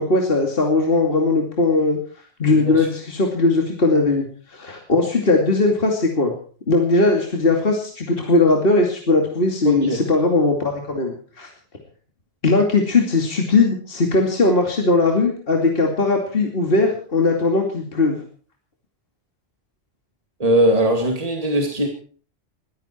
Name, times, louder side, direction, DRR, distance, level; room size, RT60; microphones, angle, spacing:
voice 1, 0.0-2.0 2.4-6.3 6.7-11.5 12.4-18.2, left 3 dB, 50° left, 1 dB, 2.8 m, -19 dB
voice 2, 2.5-2.9 9.7-10.0 20.4-21.9, right 1 dB, 30° right, 2 dB, 2.4 m, -20 dB
21.5 x 14.5 x 4.5 m, 0.42 s
omnidirectional pair, 1.2 m